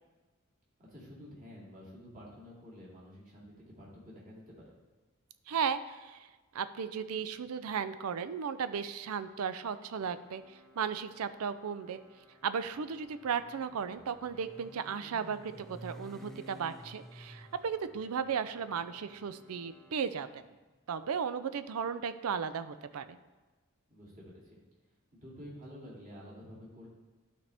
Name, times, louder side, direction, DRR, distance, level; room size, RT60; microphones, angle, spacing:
voice 1, 0.8-4.7 23.9-24.6 25.1-26.9, equal, 35° right, -6 dB, 2.3 m, -50 dB
voice 2, 5.5-6.3 6.5-12.0 12.4-20.4 20.9-23.2, right 6 dB, 75° right, 12 dB, 0.4 m, -35 dB
Organ, 9.9-20.7, equal, 20° right, 1.2 m, -62 dB
Motorcycle, 12.6-20.8, equal, ahead, 0.3 m, -53 dB
12.0 x 4.2 x 3.4 m, 1.2 s
head